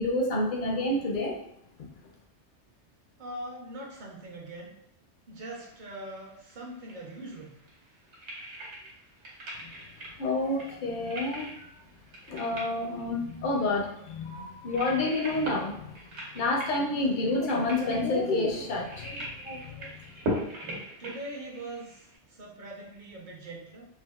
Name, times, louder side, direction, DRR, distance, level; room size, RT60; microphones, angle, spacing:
voice 1, 0.0-1.4 10.2-11.7 12.3-15.9 16.3-20.0, left 2 dB, 55° left, 1 dB, 0.6 m, -29 dB
voice 2, 3.2-4.7 5.3-7.5 21.0-23.9, right 1 dB, 50° right, -1 dB, 0.7 m, -42 dB
sound 1, 5.5-22.2, equal, 75° right, 1.2 m, -40 dB
3.5 x 2.3 x 2.3 m, 0.76 s
omnidirectional pair, 1.2 m